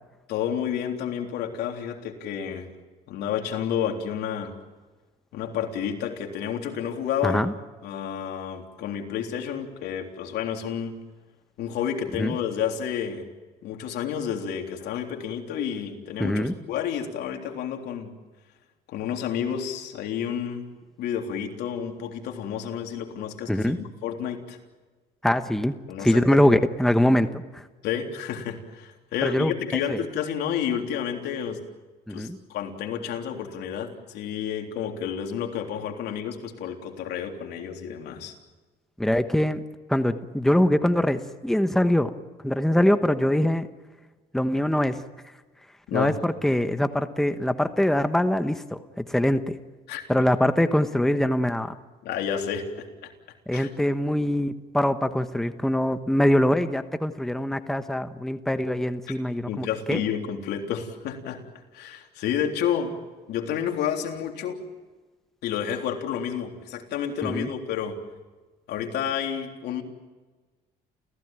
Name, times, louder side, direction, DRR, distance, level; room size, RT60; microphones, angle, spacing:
voice 1, 0.3-2.7 3.1-4.5 5.3-7.5 7.8-10.9 11.6-13.3 13.6-18.1 18.9-20.7 21.0-24.6 25.9-26.4 27.8-31.6 32.1-38.3 45.9-46.2 49.9-50.0 52.0-53.1 53.5-53.7 59.5-61.4 61.7-63.0 63.3-64.6 65.4-68.0 68.7-69.8, left 8 dB, 80° left, 3 dB, 3.6 m, -30 dB
voice 2, 16.2-16.6 23.5-23.8 25.2-25.7 26.0-27.6 29.2-30.0 32.1-32.4 39.0-39.6 39.9-42.1 42.4-43.7 44.3-45.0 45.9-49.6 50.1-51.7 53.5-60.0 67.2-67.5, left 1 dB, ahead, 9 dB, 1.1 m, -23 dB
30.0 x 16.0 x 9.1 m, 1.3 s
cardioid pair, 110°, 17 cm